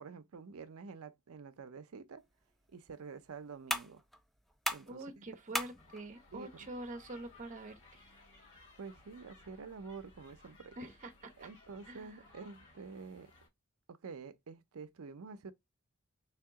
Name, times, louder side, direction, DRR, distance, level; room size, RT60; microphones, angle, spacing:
voice 1, 0.0-2.2 2.7-4.0 4.7-5.2 6.3-6.5 8.8-10.8 11.4-13.3 13.9-15.5, right 5 dB, 75° right, 0.5 m, -48 dB
sound 1, 2.2-9.2, equal, ahead, 0.4 m, -44 dB
voice 2, 4.9-8.0 10.8-11.5 11.9-12.3, right 2 dB, 35° right, 0.7 m, -46 dB
sound 2, 5.8-13.5, left 2 dB, 60° left, 2.4 m, -61 dB
3.4 x 2.8 x 3.4 m
head